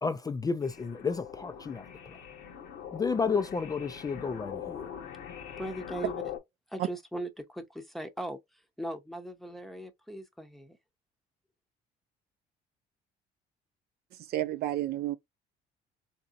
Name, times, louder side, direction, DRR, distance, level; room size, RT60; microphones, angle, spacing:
voice 1, 0.0-1.8 2.9-4.9, left 5 dB, 20° left, 0.3 m, -31 dB
sound 1, 0.6-6.4, left 8 dB, 75° left, 1.0 m, -42 dB
voice 2, 5.6-6.2 6.7-8.4 8.8-10.8, right 1 dB, ahead, 0.7 m, -39 dB
voice 3, 14.3-15.2, right 14 dB, 65° right, 0.5 m, -30 dB
3.9 x 2.8 x 2.4 m
cardioid pair, 110°, 17 cm